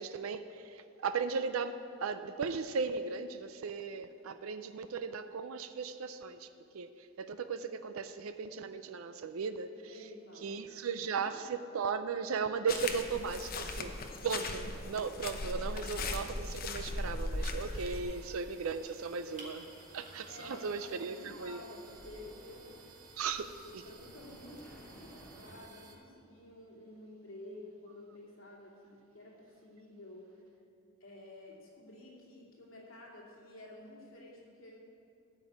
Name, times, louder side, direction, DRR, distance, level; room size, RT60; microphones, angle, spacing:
voice 1, 0.0-6.5 6.7-9.9 10.4-13.9 14.2-19.7 19.9-21.6 23.2-23.5 23.7-23.8, right 5 dB, 90° right, 10 dB, 0.5 m, -37 dB
voice 2, 9.8-10.6 11.0-11.4 20.3-22.8 23.8-30.6 31.0-34.8, left 1 dB, 75° left, -4 dB, 2.6 m, -51 dB
sound 1, 12.7-18.0, left 2 dB, 45° left, 0.8 m, -38 dB
sound 2, 13.7-25.6, equal, 5° left, 2.7 m, -60 dB
sound 3, 17.1-26.0, right 2 dB, 40° right, 1.8 m, -55 dB
13.0 x 5.3 x 8.1 m, 2.5 s
head